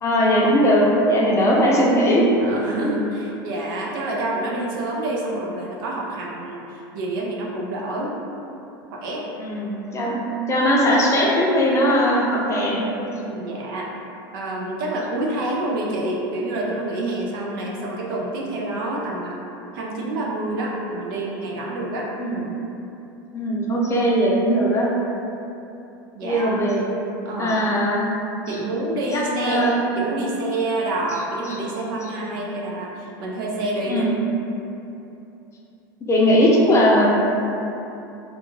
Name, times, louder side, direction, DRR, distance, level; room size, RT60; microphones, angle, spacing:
voice 1, 0.0-2.3 2.8-2.9 9.4-10.2 10.5-12.8 22.2-22.4 23.3-24.9 26.2-26.8 27.4-28.1 29.1-29.8 33.9-34.1 36.0-37.2, equal, 25° left, -4 dB, 0.5 m, -19 dB
voice 2, 2.4-8.2 8.9-9.3 13.2-14.0 14.3-19.4 19.7-22.1 26.2-26.5 27.2-27.6 28.5-29.7 30.0-34.0, right 2 dB, 75° right, -2 dB, 0.5 m, -27 dB
2.4 x 2.3 x 3.0 m, 2.8 s
supercardioid pair, 110°, 11 cm